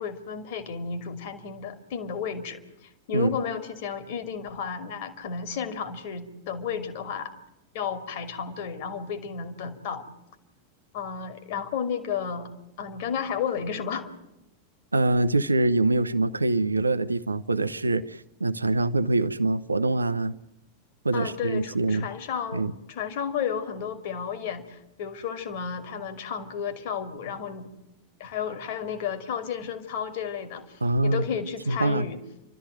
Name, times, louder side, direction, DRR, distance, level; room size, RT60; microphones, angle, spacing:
voice 1, 0.0-7.3 7.7-10.1 10.9-12.5 12.8-14.1 21.1-27.7 28.2-32.2, left 7 dB, 50° left, 9 dB, 2.6 m, -32 dB
voice 2, 14.9-20.3 21.0-22.1 22.5-22.7 30.8-31.3 31.7-32.1, right 2 dB, 80° right, 13 dB, 0.8 m, -24 dB
29.5 x 13.0 x 9.2 m, 0.92 s
figure-of-eight pair, 90°, 0 cm